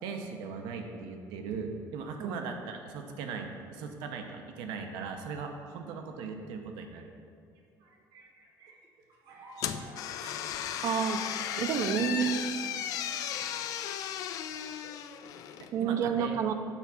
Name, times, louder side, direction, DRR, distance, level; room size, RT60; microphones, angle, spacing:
voice 1, 0.0-7.1 10.2-10.4 15.6-16.3, right 5 dB, 85° right, 4 dB, 0.8 m, -39 dB
sound 1, 7.6-15.1, right 3 dB, 65° right, 1.2 m, -53 dB
sound 2, 9.6-15.7, left 10 dB, 55° left, 0.3 m, -35 dB
voice 2, 10.8-11.2 11.6-12.4 15.7-16.5, right 7 dB, 45° right, 8 dB, 0.5 m, -29 dB
7.3 x 4.6 x 5.6 m, 2.4 s
cardioid pair, 165°, 7 cm